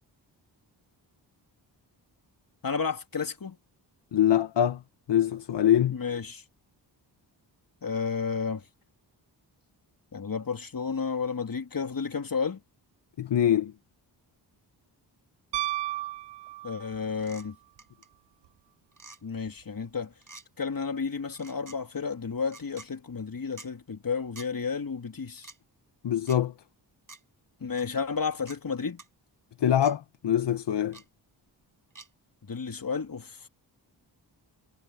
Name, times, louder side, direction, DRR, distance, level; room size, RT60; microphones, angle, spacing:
voice 1, 2.6-3.6 5.9-6.4 7.8-8.6 10.1-12.6 16.6-17.5 19.2-20.1 20.6-25.5 27.6-29.0 32.5-33.5, left 5 dB, 45° left, 3.2 m, -32 dB
voice 2, 4.1-4.8 5.1-6.0 13.2-13.7 26.0-26.5 29.6-31.0, left 10 dB, 65° left, 1.2 m, -24 dB
Piano, 15.5-17.1 19.5-19.6, right 16 dB, 65° right, 0.5 m, -33 dB
sound 1, 17.2-17.5 17.8-18.1 18.9-19.2 20.2-20.5 21.3-21.8 22.5-22.9 23.6-23.7 24.4-24.5 25.4-25.6 26.3-26.4 27.1-27.2 27.8-27.9 28.5-28.6 29.0-29.1 29.8-29.9 30.9-31.0 32.0-32.1, right 3 dB, 45° right, 7.1 m, -47 dB
cardioid pair, 55°, 45 cm